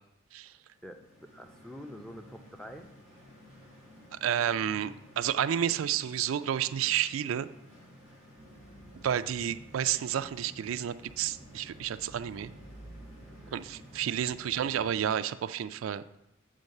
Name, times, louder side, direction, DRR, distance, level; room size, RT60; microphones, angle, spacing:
voice 1, 0.5-2.9 13.3-13.6, equal, 5° left, 5 dB, 0.5 m, -47 dB
sound 1, 0.7-15.2, equal, 75° left, 2.5 m, -55 dB
voice 2, 4.2-7.5 9.0-12.5 13.5-16.0, right 9 dB, 85° right, 12 dB, 0.3 m, -30 dB
sound 2, 8.4-14.9, right 1 dB, 30° left, 1.0 m, -52 dB
8.4 x 3.8 x 6.5 m, 0.86 s
head